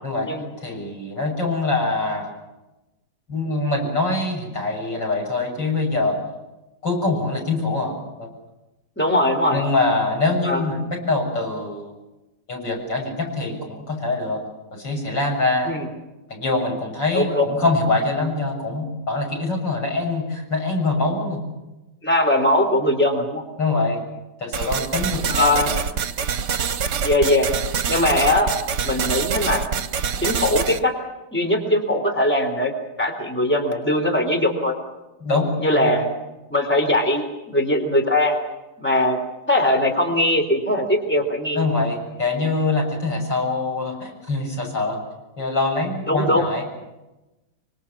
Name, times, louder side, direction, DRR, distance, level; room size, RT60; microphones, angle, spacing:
voice 1, 0.6-2.3 3.3-6.2 6.8-8.3 9.5-11.9 12.5-14.4 14.7-15.7 16.3-21.4 23.6-24.0 24.4-25.8 35.2-35.9 41.5-45.0 45.4-46.7, left 3 dB, 85° left, 0 dB, 7.9 m, -24 dB
voice 2, 9.0-9.6 10.5-10.6 15.7-15.9 17.1-17.4 22.0-23.4 25.3-25.7 27.0-27.5 27.9-28.5 28.8-29.7 30.2-31.0 31.3-32.7 33.0-34.7 35.6-36.1 36.5-38.4 38.8-39.2 39.5-41.6 46.1-46.4, left 1 dB, 5° left, 4 dB, 3.5 m, -20 dB
sound 1, 24.5-30.8, right 6 dB, 70° right, 1.8 m, -25 dB
25.5 x 25.0 x 7.3 m, 1.0 s
omnidirectional pair, 1.9 m